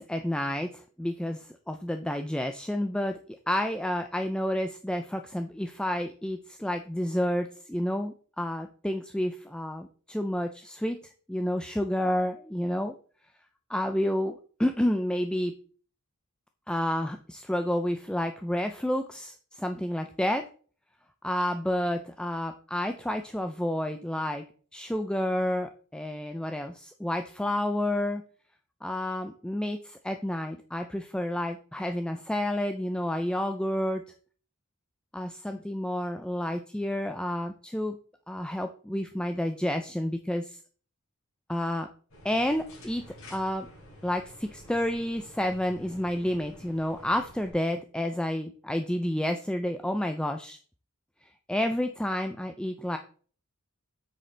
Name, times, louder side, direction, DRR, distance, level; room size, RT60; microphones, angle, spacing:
voice 1, 0.0-3.2 3.5-11.0 11.3-12.9 13.7-15.5 16.7-20.5 21.2-24.4 24.7-28.2 28.8-34.1 35.1-38.0 38.3-40.6 41.5-41.9 42.2-43.7 44.0-50.6 51.5-53.0, left 1 dB, 5° left, 6 dB, 0.4 m, -30 dB
sound 1, 42.1-47.5, left 1 dB, 70° left, 3.7 m, -50 dB
8.5 x 6.4 x 3.3 m, 0.43 s
head